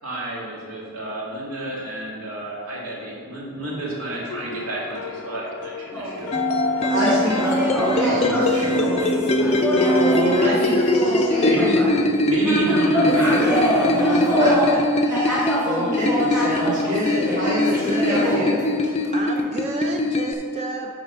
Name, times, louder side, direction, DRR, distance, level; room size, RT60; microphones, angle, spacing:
voice 1, 0.0-6.3 7.7-9.2 11.4-13.5 17.8-18.1, right 1 dB, 85° right, -5 dB, 2.1 m, -30 dB
sound 1, 3.6-19.2, left 5 dB, 90° left, 0.5 m, -39 dB
sound 2, 5.9-12.2 12.4-19.1 19.3-19.4, equal, 5° right, 1.8 m, -25 dB
sound 3, 6.3-20.3, left 1 dB, 30° left, 0.4 m, -22 dB
voice 2, 6.9-7.4 7.8-8.3 9.9-12.0 14.1-18.6, equal, 55° right, -10 dB, 1.9 m, -27 dB
voice 3, 18.9-20.9, right 2 dB, 30° right, 2 dB, 0.4 m, -31 dB
7.6 x 4.9 x 5.4 m, 2.2 s
head